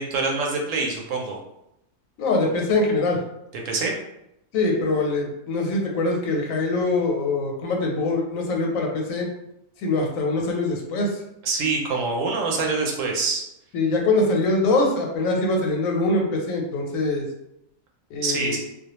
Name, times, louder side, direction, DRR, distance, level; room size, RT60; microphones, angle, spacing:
voice 1, 0.0-1.4 3.6-3.9 11.4-13.4 18.2-18.6, right 4 dB, 75° right, 0 dB, 0.9 m, -25 dB
voice 2, 2.2-3.2 4.5-9.3 9.8-11.2 13.7-17.2 18.1-18.6, left 2 dB, 85° left, 1 dB, 1.0 m, -23 dB
2.3 x 2.1 x 2.8 m, 0.83 s
omnidirectional pair, 1.4 m